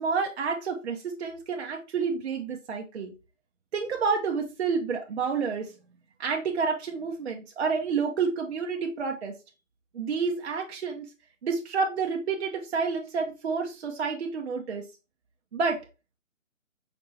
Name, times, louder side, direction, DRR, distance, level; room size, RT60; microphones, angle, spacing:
voice 1, 0.0-3.1 3.7-5.7 6.2-9.3 9.9-11.1 11.4-14.8 15.5-15.8, right 5 dB, 55° right, 2 dB, 0.7 m, -29 dB
5.0 x 2.7 x 3.2 m, 0.29 s
figure-of-eight pair, 145°, 40 cm